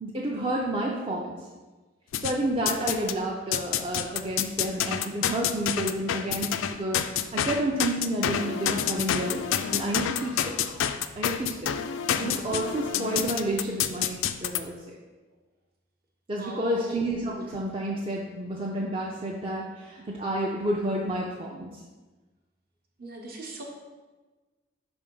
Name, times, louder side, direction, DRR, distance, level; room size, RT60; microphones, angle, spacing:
voice 1, 0.0-1.4 2.2-7.0 7.3-10.5 11.2-11.7 12.1-15.0 16.3-21.8, right 1 dB, 25° right, -3 dB, 0.5 m, -30 dB
sound 1, 2.1-3.2 3.5-14.6, left 9 dB, 75° left, 0.3 m, -28 dB
voice 2, 16.4-17.1 23.0-23.6, right 1 dB, 45° right, 0 dB, 0.9 m, -38 dB
5.4 x 3.4 x 5.2 m, 1.2 s
head